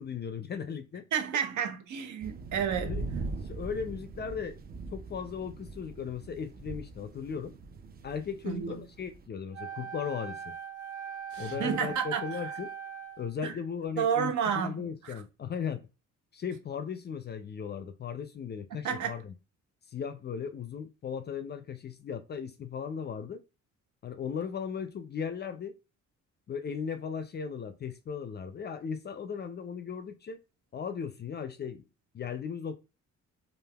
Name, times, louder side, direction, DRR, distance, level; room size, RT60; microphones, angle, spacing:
voice 1, 0.0-1.1 2.8-3.0 3.4-4.6 4.9-7.5 8.0-10.6 11.4-12.7 13.2-14.3 14.6-15.8 16.3-19.3 19.9-23.4 24.0-25.7 26.5-30.4 30.7-31.8 32.1-32.8, left 7 dB, 35° left, 0.4 m, -37 dB
voice 2, 1.1-3.0 8.4-8.8 11.3-12.5 13.4-13.5 14.0-15.1 18.8-19.2, right 7 dB, 70° right, 0.7 m, -31 dB
sound 1, 2.2-9.3, right 3 dB, 30° right, 0.4 m, -41 dB
Wind instrument woodwind instrument, 9.5-13.3, right 7 dB, 55° right, 0.9 m, -40 dB
3.2 x 2.4 x 2.2 m
cardioid pair, 90°, 30 cm